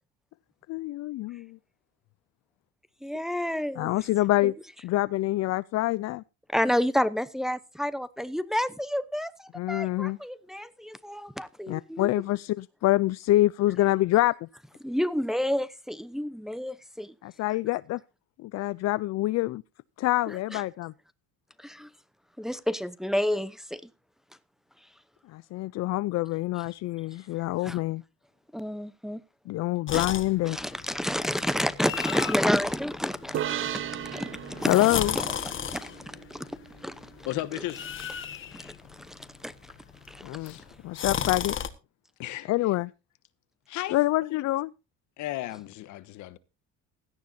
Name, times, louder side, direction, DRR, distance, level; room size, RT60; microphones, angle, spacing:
voice 1, 0.7-1.6 3.8-4.5 4.8-6.2 9.6-10.2 11.7-14.5 17.2-18.0 18.4-19.6 20.0-20.9 25.3-28.0 29.5-30.6 34.7-35.1 40.2-40.6 40.8-41.5 42.5-42.9 43.9-44.7, left 17 dB, 60° left, 0.5 m, -26 dB
voice 2, 3.0-4.0 4.4-4.5 6.5-12.1 14.8-17.1 20.3-20.6 21.6-21.9 22.4-23.8 27.6-27.8 28.5-29.2 29.9-30.0 30.4-36.5 36.8-37.1 38.5-39.7 40.1-40.5, equal, ahead, 0.8 m, -30 dB
sound 1, 29.9-41.7, left 8 dB, 40° left, 1.6 m, -37 dB
sound 2, 33.3-36.8, right 10 dB, 45° right, 0.7 m, -36 dB
voice 3, 37.2-37.8 40.4-40.6 42.2-42.7 43.7-44.4 45.2-46.4, left 15 dB, 75° left, 1.2 m, -35 dB
17.0 x 12.0 x 2.7 m
cardioid pair, 130°, 30 cm